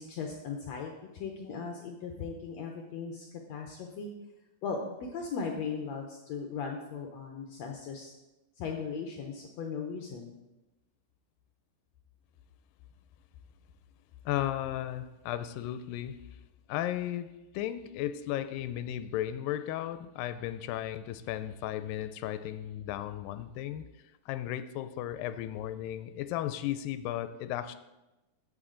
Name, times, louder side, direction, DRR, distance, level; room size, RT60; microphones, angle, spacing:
voice 1, 0.0-4.1 4.6-8.1 8.6-10.4, left 5 dB, 70° left, 2 dB, 1.6 m, -38 dB
voice 2, 14.3-16.2 16.7-17.3 17.5-23.8 24.3-27.8, left 12 dB, 90° left, 11 dB, 2.3 m, -35 dB
14.5 x 6.7 x 3.8 m, 1.0 s
omnidirectional pair, 3.9 m